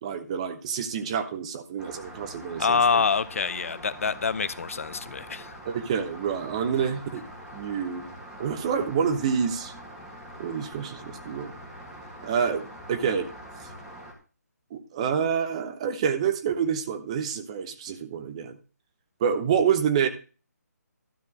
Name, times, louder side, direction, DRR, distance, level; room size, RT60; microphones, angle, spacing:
voice 1, 0.0-3.0 5.6-7.2 7.5-8.0 8.4-9.7 10.4-11.5 12.2-13.3 14.7-18.6 19.2-20.1, right 7 dB, 20° right, 1.0 m, -27 dB
Rain, 1.8-14.1, equal, 5° right, 1.7 m, -44 dB
voice 2, 2.6-5.6, left 5 dB, 55° left, 0.7 m, -26 dB
12.5 x 4.3 x 8.5 m
hypercardioid pair, 170°, 9 cm